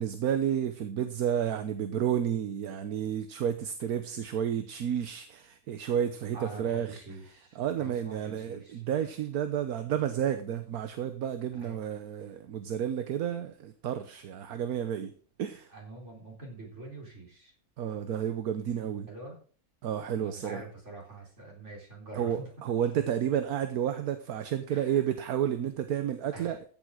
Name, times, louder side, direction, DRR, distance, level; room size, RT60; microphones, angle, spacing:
voice 1, 0.0-7.0 7.5-15.1 15.4-15.7 17.8-19.1 19.8-20.6 22.1-26.6, right 9 dB, 75° right, 9 dB, 1.3 m, -31 dB
voice 2, 6.3-8.8 11.6-11.8 15.7-17.5 19.1-19.4 20.1-22.5 24.7-25.0 26.3-26.6, right 2 dB, 50° right, 0 dB, 4.4 m, -45 dB
14.5 x 7.1 x 4.9 m, 0.43 s
omnidirectional pair, 1.6 m